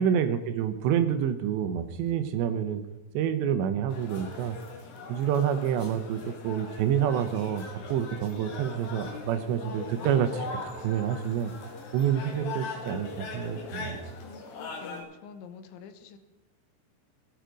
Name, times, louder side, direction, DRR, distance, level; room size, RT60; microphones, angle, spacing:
voice 1, 0.0-2.8 3.1-4.6 5.1-14.0, right 9 dB, 80° right, 10 dB, 2.8 m, -28 dB
sound 1, 3.9-15.0, left 4 dB, 60° left, 3.4 m, -40 dB
voice 2, 14.2-16.2, left 7 dB, 85° left, 9 dB, 3.2 m, -47 dB
17.0 x 9.2 x 5.1 m, 1.1 s
omnidirectional pair, 5.5 m